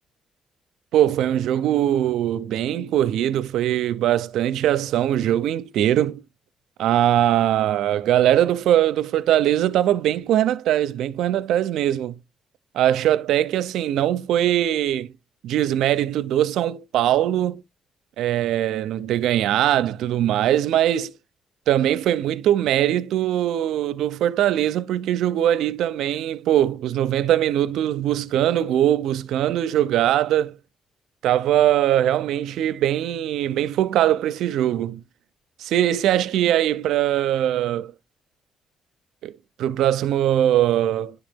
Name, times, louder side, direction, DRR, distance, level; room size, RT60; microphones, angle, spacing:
voice 1, 0.9-6.2 6.8-12.2 12.7-15.1 15.4-17.6 18.2-21.1 21.7-30.6 31.2-35.0 35.6-37.9 39.2-39.3 39.6-41.1, right 12 dB, 85° right, 0.6 m, -21 dB
10.5 x 3.9 x 3.5 m
cardioid pair, 90°, 0 cm